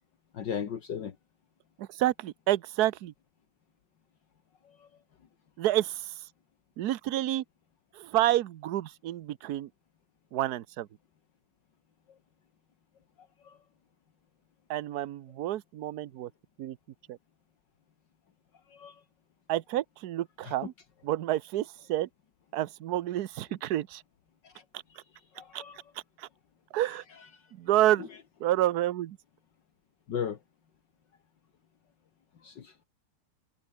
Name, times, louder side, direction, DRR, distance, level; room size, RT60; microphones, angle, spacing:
voice 1, 0.3-1.2 4.6-4.9 13.4-13.6 18.7-19.0 20.4-20.5 24.4-24.6 25.4-25.8 27.3-27.4 30.1-30.4 32.4-32.8, left 8 dB, 65° left, 2.2 m, -36 dB
voice 2, 1.8-3.1 5.6-6.2 6.8-7.4 7.9-9.7 10.3-10.9 14.7-16.3 16.6-16.8 17.1-17.2 19.5-20.7 21.0-22.1 22.5-24.0 25.5-25.6 26.2-26.3 26.7-27.0 27.5-28.1 28.4-29.2, right 13 dB, 60° right, 1.2 m, -29 dB
omnidirectional pair, 2.1 m